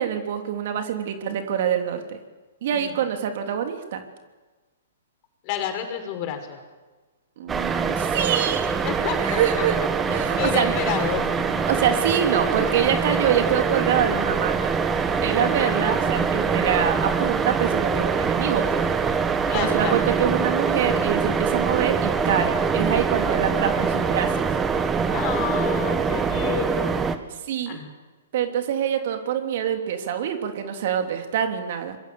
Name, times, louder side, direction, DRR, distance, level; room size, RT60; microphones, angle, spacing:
voice 1, 0.0-2.2 2.6-4.0 7.4-8.7 9.2-9.7 10.1-10.8 11.7-14.7 15.2-18.9 19.5-24.5 27.5-27.8 28.3-32.0, right 8 dB, 55° right, 6 dB, 3.2 m, -25 dB
voice 2, 5.4-6.6 8.8-9.7 10.1-11.5 15.4-15.8 19.5-20.0 25.1-27.0 27.7-27.9, left 9 dB, 40° left, 5 dB, 5.6 m, -30 dB
sound 1, 7.5-27.2, right 5 dB, 15° right, 1.8 m, -24 dB
26.0 x 22.5 x 7.2 m, 1.3 s
hypercardioid pair, 125°, 0 cm